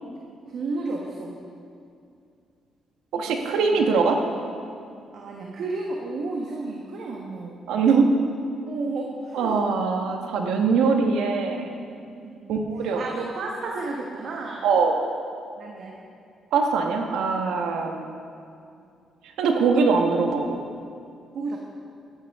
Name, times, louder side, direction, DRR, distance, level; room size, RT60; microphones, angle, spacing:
voice 1, 0.5-1.4 3.2-3.6 5.1-7.6 8.7-9.7 12.2-12.5 12.8-14.7 15.6-16.0 21.3-21.6, right 3 dB, 65° right, -1 dB, 1.2 m, -32 dB
voice 2, 3.1-4.2 7.7-8.1 9.3-11.7 12.5-13.0 14.6-15.0 16.5-18.1 19.4-20.6, right 4 dB, 85° right, 3 dB, 1.2 m, -22 dB
15.0 x 10.5 x 3.6 m, 2.4 s
cardioid pair, 90°, 0 cm